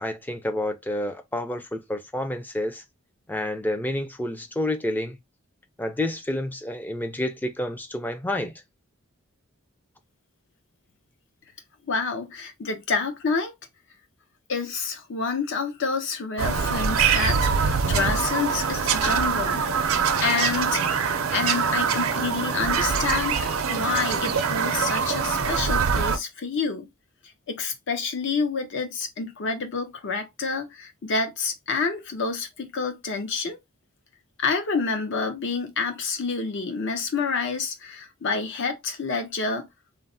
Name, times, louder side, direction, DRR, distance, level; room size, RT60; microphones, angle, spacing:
voice 1, 0.0-2.8 3.3-5.2 5.8-8.5, left 1 dB, 10° left, 0.4 m, -29 dB
voice 2, 11.9-13.5 14.5-19.9 20.2-20.9 21.3-26.9 27.5-33.6 34.4-39.7, left 4 dB, 60° left, 0.7 m, -28 dB
Bird vocalization bird call bird song, 16.4-26.2, right 6 dB, 75° right, 0.5 m, -24 dB
3.1 x 2.0 x 2.6 m
head